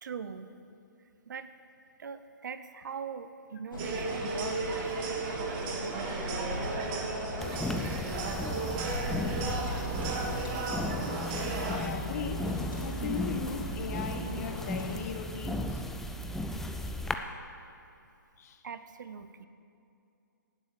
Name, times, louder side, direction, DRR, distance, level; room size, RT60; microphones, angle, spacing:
voice 1, 0.0-0.5 1.3-1.5 2.0-4.9 18.6-19.5, right 6 dB, 65° right, 11 dB, 0.9 m, -41 dB
sound 1, 3.7-15.0, left 2 dB, 80° left, 3.7 m, -40 dB
sound 2, 3.8-11.9, right 3 dB, 30° right, 1.6 m, -35 dB
sound 3, 7.4-17.1, left 1 dB, 5° left, 0.5 m, -35 dB
voice 2, 11.2-12.5 12.8-15.8 18.4-18.6, left 6 dB, 50° left, 6 dB, 1.3 m, -38 dB
18.0 x 7.6 x 6.9 m, 2.6 s
figure-of-eight pair, 135°, 11 cm